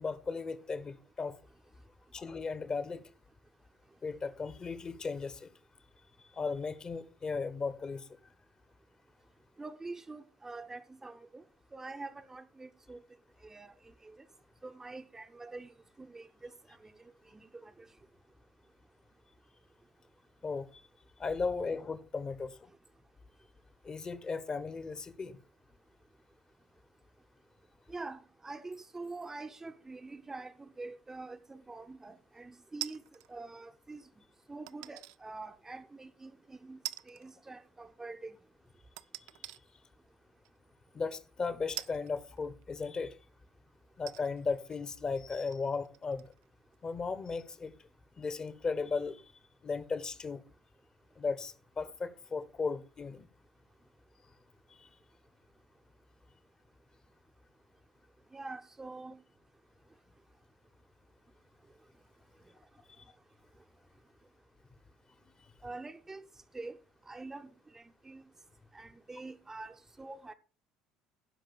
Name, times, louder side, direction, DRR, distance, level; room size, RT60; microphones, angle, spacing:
voice 1, 0.0-1.4 2.1-3.1 4.0-5.5 6.3-8.1 20.4-20.7 21.2-22.6 23.8-25.4 40.9-43.1 44.0-46.3 46.8-47.7 48.2-49.2 49.6-50.4 51.2-53.3 54.8-54.9, left 4 dB, 25° left, 1.1 m, -36 dB
voice 2, 9.6-11.4 11.7-13.0 13.4-14.2 14.6-16.5 16.8-16.9 17.3-17.9 27.9-33.0 33.3-34.0 34.5-36.8 37.1-38.4 58.3-59.2 65.6-66.3 66.5-66.8 67.1-68.2 68.7-70.3, right 3 dB, 15° right, 0.8 m, -45 dB
sound 1, 32.8-33.3 34.7-35.2 35.7-35.8 36.8-37.3 37.6-37.7 39.0-39.6 40.4-40.6 41.8-42.9 43.5-43.6 44.0-46.5 46.7-46.8, right 18 dB, 60° right, 0.4 m, -44 dB
11.5 x 5.3 x 6.9 m
figure-of-eight pair, 60°, 3 cm